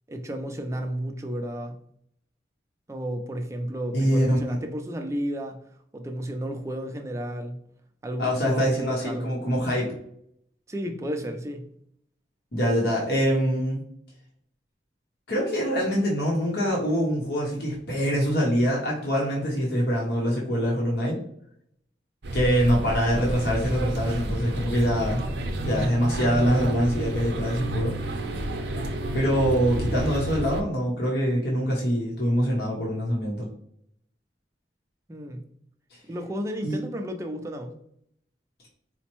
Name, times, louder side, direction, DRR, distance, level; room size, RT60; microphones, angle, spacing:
voice 1, 0.1-1.8 2.9-5.6 5.9-7.6 8.0-9.4 10.7-11.6 35.1-35.5 36.1-37.7, equal, 15° right, 4 dB, 0.4 m, -32 dB
voice 2, 3.9-4.6 8.2-9.9 12.5-13.8 15.3-21.2 22.3-25.2 25.6-28.0 29.1-33.5 36.6-36.8, equal, 65° left, -4 dB, 0.8 m, -24 dB
sound 1, 22.2-30.6, right 1 dB, 75° right, 0.6 m, -30 dB
4.3 x 2.1 x 2.9 m, 0.69 s
head